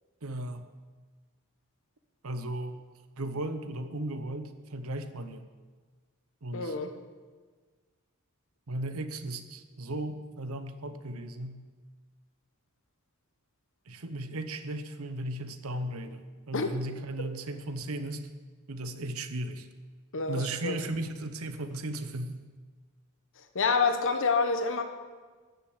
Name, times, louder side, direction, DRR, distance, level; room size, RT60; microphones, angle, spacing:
voice 1, 0.2-0.7 2.2-2.8 3.2-5.5 6.4-6.7 8.7-11.6 13.9-18.2 18.7-19.7 20.3-22.4, right 1 dB, 70° right, 9 dB, 0.9 m, -36 dB
voice 2, 6.5-7.0 16.5-16.7 17.2-17.3 20.1-20.8 23.4-24.8, left 4 dB, 60° left, 6 dB, 1.2 m, -28 dB
13.0 x 6.7 x 8.0 m, 1.4 s
head